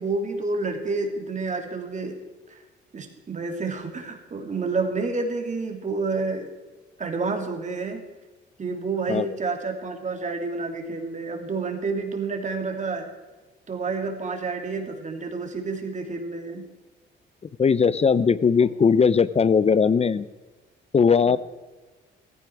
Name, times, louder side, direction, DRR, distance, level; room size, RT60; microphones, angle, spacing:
voice 1, 0.0-2.2 2.5-2.6 2.9-6.5 7.0-8.0 8.6-13.1 13.7-16.7 21.3-21.4, right 3 dB, 40° right, 3 dB, 2.9 m, -29 dB
voice 2, 17.6-20.3 20.9-21.4, left 6 dB, 30° left, 17 dB, 0.6 m, -19 dB
16.5 x 15.0 x 4.7 m, 1.2 s
cardioid pair, 90°, 20 cm